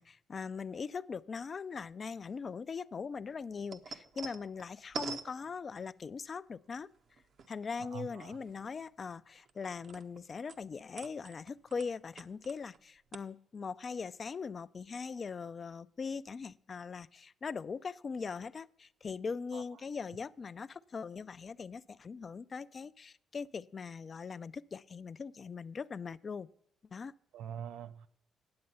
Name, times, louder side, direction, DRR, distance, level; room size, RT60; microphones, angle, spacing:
voice 1, 0.0-6.9 7.5-26.5 26.9-27.1, left 5 dB, 40° left, 0.3 m, -41 dB
sound 1, 3.2-6.1 6.8-7.8 8.2-10.2 10.5-12.8 13.1-13.2, right 5 dB, 60° right, 0.7 m, -46 dB
voice 2, 7.8-8.4 19.5-19.6 27.3-28.1, right 8 dB, 85° right, 0.5 m, -44 dB
9.5 x 7.8 x 5.5 m
cardioid pair, 90°, 0 cm